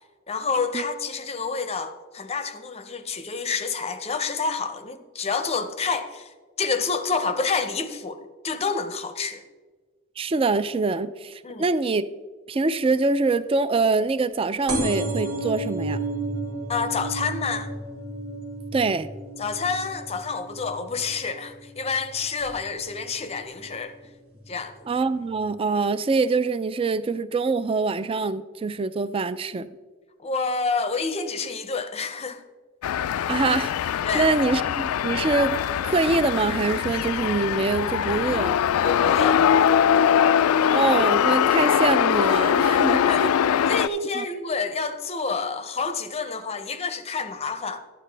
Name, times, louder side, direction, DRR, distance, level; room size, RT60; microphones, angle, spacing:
voice 1, 0.3-9.4 11.4-11.6 16.7-17.7 19.4-23.9 24.5-24.8 30.2-32.4 34.0-34.4 38.8-39.5 42.9-43.3 43.7-47.8, left 4 dB, 30° left, 0.6 m, -28 dB
voice 2, 10.2-12.0 12.5-16.0 18.7-19.1 24.9-29.7 33.3-35.6 35.8-38.6 40.6-43.3 44.1-44.2, right 3 dB, 25° right, 0.3 m, -24 dB
sound 1, 14.7-21.9 22.4-22.9 23.7-23.8 24.0-24.1 24.3-24.4, right 1 dB, 90° right, 2.4 m, -32 dB
sound 2, 32.8-43.9, left 9 dB, 85° left, 0.3 m, -22 dB
11.5 x 9.4 x 3.3 m
head